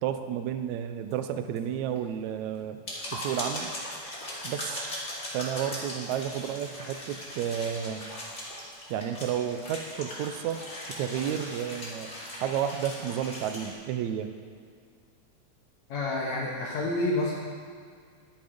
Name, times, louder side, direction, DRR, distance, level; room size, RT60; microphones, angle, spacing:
voice 1, 0.0-2.8 3.1-3.7 4.4-4.8 5.3-8.0 8.9-10.6 11.0-12.1 12.4-14.3, right 9 dB, 85° right, 9 dB, 2.0 m, -31 dB
sound 1, 1.1-1.2 1.6-1.7 2.0-2.1 2.6-13.7, left 1 dB, 25° left, 2.2 m, -39 dB
voice 2, 15.9-17.3, left 2 dB, 70° left, -4 dB, 2.6 m, -28 dB
10.5 x 10.5 x 5.2 m, 2.1 s
omnidirectional pair, 3.4 m